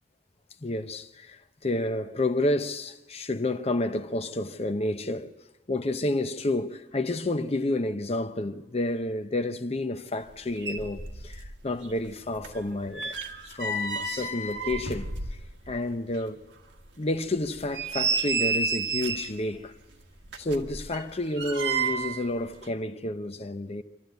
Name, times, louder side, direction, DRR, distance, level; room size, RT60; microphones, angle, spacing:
voice 1, 0.6-5.3 5.7-13.1 13.5-15.4 15.7-16.4 17.0-19.7 20.4-23.8, left 2 dB, 35° left, 0.8 m, -30 dB
sound 1, 10.3-10.4 10.6-11.6 11.8-15.8 16.1-16.2 16.8-16.9 17.4-19.4 20.2-22.2 22.5-22.7, right 4 dB, 85° right, 1.6 m, -31 dB
26.5 x 12.5 x 8.2 m
head